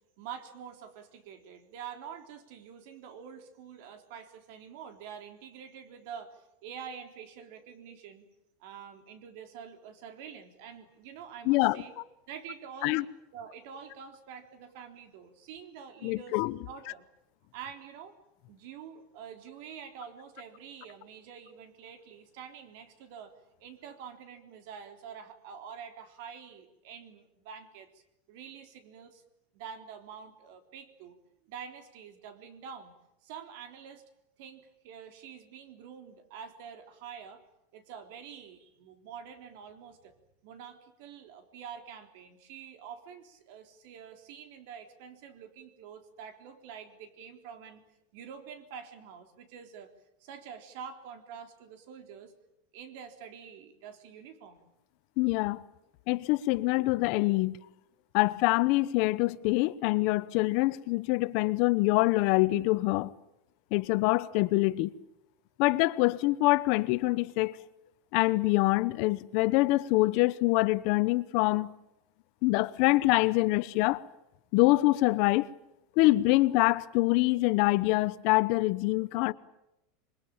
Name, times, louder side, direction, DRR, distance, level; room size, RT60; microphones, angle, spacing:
voice 1, 0.2-8.3 8.6-11.9 12.3-13.1 13.3-17.0 17.5-18.2 18.5-23.3 23.6-28.0 28.3-29.2 29.5-31.2 31.4-32.9 33.2-34.0 34.4-37.4 37.7-40.1 40.4-47.8 48.1-49.9 50.2-52.3 52.7-54.7, right 7 dB, 60° right, 3.6 m, -47 dB
voice 2, 11.5-11.8 12.8-13.0 16.0-16.6 55.2-55.6 56.1-57.6 58.1-63.1 63.7-64.9 65.6-67.6 68.1-71.7 72.4-74.0 74.5-75.5 76.0-79.3, left 20 dB, 50° left, 0.9 m, -25 dB
26.5 x 22.0 x 8.9 m
supercardioid pair, 155°, 0 cm